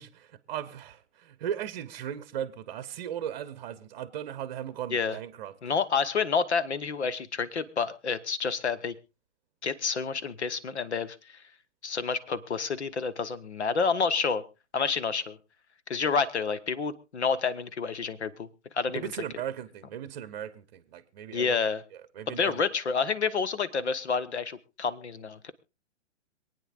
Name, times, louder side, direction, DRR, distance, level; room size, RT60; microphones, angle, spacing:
voice 1, 0.0-5.5 18.9-21.6 21.9-22.6, right 10 dB, 35° right, 0.9 m, -37 dB
voice 2, 5.6-8.9 9.6-11.4 11.8-14.4 14.7-15.4 15.9-18.5 18.7-19.1 21.3-21.8 22.3-25.5, left 5 dB, 65° left, 1.1 m, -29 dB
26.5 x 9.2 x 2.4 m
figure-of-eight pair, 120°, 36 cm